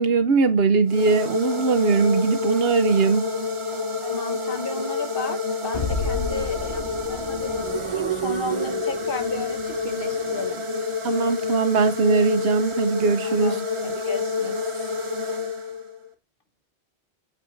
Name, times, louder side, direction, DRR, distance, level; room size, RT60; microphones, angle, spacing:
voice 1, 0.0-3.3 11.0-13.6, right 4 dB, 65° right, 0.9 m, -20 dB
sound 1, 0.9-16.1, left 3 dB, 30° right, 1.0 m, -28 dB
voice 2, 4.0-10.6 13.2-14.9, left 3 dB, 55° left, 1.3 m, -34 dB
sound 2, 5.7-10.8, left 3 dB, 80° left, 2.8 m, -34 dB
8.5 x 7.3 x 2.6 m
omnidirectional pair, 1.1 m